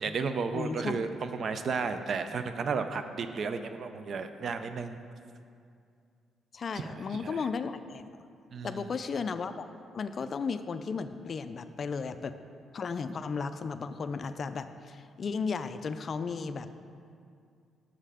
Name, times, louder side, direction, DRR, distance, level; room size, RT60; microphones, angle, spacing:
voice 1, 0.0-5.0 6.8-7.4 8.5-8.9, right 5 dB, 55° right, 9 dB, 0.4 m, -33 dB
voice 2, 0.5-1.0 6.5-8.0 8.6-9.7 9.9-12.3 12.7-16.9, left 5 dB, 45° left, 11 dB, 0.3 m, -35 dB
6.4 x 5.6 x 4.9 m, 2.4 s
cardioid pair, 90°, 0 cm